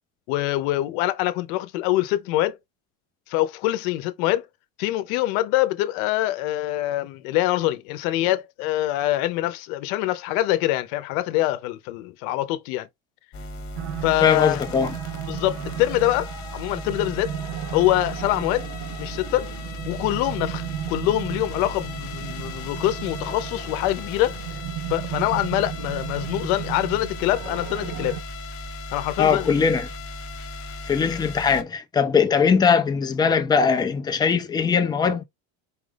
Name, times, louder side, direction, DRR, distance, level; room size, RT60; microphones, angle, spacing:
voice 1, 0.3-2.6 3.3-4.4 4.8-12.9 14.0-14.6 15.3-17.3 17.7-18.7 19.0-19.5 19.8-24.4 24.9-28.2 28.9-29.5, left 15 dB, 75° left, 0.8 m, -24 dB
sound 1, 13.3-31.6, left 2 dB, 30° left, 1.1 m, -36 dB
sound 2, 13.8-28.2, right 12 dB, 50° right, 0.7 m, -35 dB
voice 2, 14.2-15.0 29.2-29.9 30.8-35.2, left 6 dB, 10° left, 0.3 m, -20 dB
4.7 x 2.4 x 3.3 m
cardioid pair, 135°, 43 cm